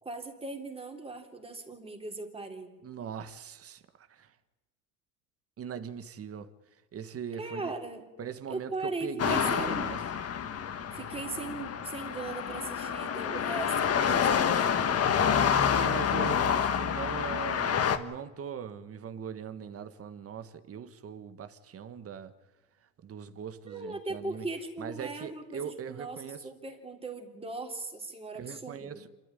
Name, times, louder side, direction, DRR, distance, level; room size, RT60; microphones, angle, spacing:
voice 1, 0.0-2.7 7.4-8.0 8.5-10.0 10.9-15.0 23.7-29.0, right 3 dB, 10° right, 3.6 m, -39 dB
voice 2, 2.8-4.3 5.6-6.5 6.9-7.7 8.2-10.0 15.6-22.3 23.0-24.5 24.8-26.5 28.3-29.1, right 7 dB, 30° right, 1.5 m, -40 dB
sound 1, 9.2-18.0, left 7 dB, 30° left, 1.5 m, -28 dB
26.5 x 13.5 x 9.9 m
supercardioid pair, 105°, 49 cm